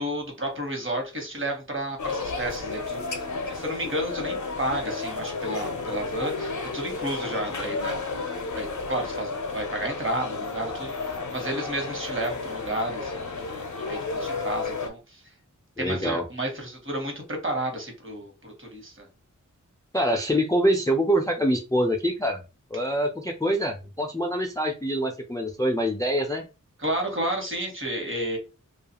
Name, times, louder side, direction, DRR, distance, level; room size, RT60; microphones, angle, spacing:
voice 1, 0.0-8.0 8.5-15.2 15.8-19.1 26.8-28.4, right 1 dB, 40° right, 2 dB, 1.1 m, -32 dB
sound 1, 2.0-14.9, left 3 dB, 65° left, 0.5 m, -32 dB
voice 2, 15.8-16.2 19.9-22.4 22.7-26.4, equal, 10° left, 4 dB, 0.4 m, -25 dB
2.3 x 2.3 x 2.8 m, 0.29 s
wide cardioid pair, 60°, 32 cm